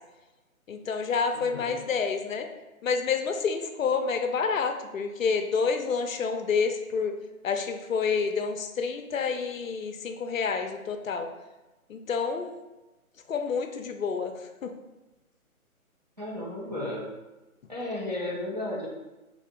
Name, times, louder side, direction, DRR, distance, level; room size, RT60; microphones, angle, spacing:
voice 1, 0.7-2.5 2.8-7.2 7.4-11.3 11.9-12.6 13.3-14.3 14.6-14.7, left 5 dB, 65° left, 6 dB, 0.5 m, -28 dB
voice 2, 1.3-1.8 16.2-17.1 17.7-18.9, left 1 dB, 30° right, -5 dB, 0.4 m, -34 dB
3.7 x 2.4 x 3.4 m, 1.1 s
figure-of-eight pair, 150°, 44 cm